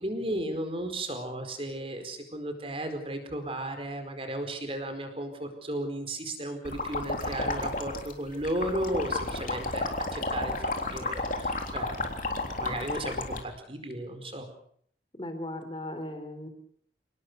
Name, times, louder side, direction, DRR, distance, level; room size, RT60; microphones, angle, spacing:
voice 1, 0.0-12.0 12.4-14.5, right 1 dB, 30° right, 7 dB, 4.7 m, -34 dB
sound 1, 6.6-13.4, left 2 dB, 50° left, 3.6 m, -32 dB
voice 2, 15.2-16.5, left 1 dB, 30° left, 8 dB, 3.7 m, -37 dB
28.5 x 18.5 x 6.9 m, 0.63 s
head